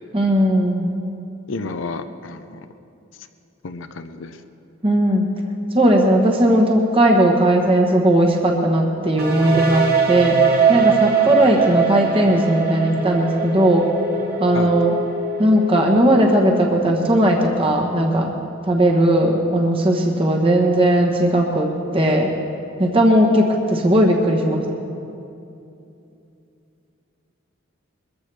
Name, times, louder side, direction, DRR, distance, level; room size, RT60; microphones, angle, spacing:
voice 1, 0.1-0.9 4.8-5.3 5.7-13.9 14.4-15.0 15.4-18.3 18.6-22.3 22.8-24.7, right 1 dB, 25° right, 1 dB, 1.1 m, -17 dB
voice 2, 1.5-2.6 3.6-4.4 14.5-14.7, left 3 dB, 70° left, 8 dB, 0.6 m, -31 dB
sound 1, 9.2-16.9, right 6 dB, 45° right, 1.3 m, -22 dB
22.0 x 14.5 x 3.4 m, 2.7 s
head